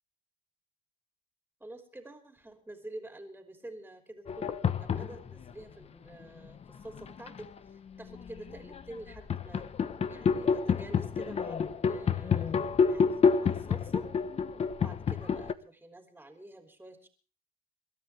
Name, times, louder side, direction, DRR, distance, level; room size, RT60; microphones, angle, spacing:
voice 1, 1.6-9.7 10.1-14.1 14.8-17.1, right 1 dB, 10° right, 5 dB, 3.1 m, -48 dB
sound 1, 4.3-5.5 6.4-7.6 8.1-15.5, left 6 dB, 40° left, 1.1 m, -29 dB
28.0 x 12.5 x 3.4 m, 0.39 s
cardioid pair, 110°, 17 cm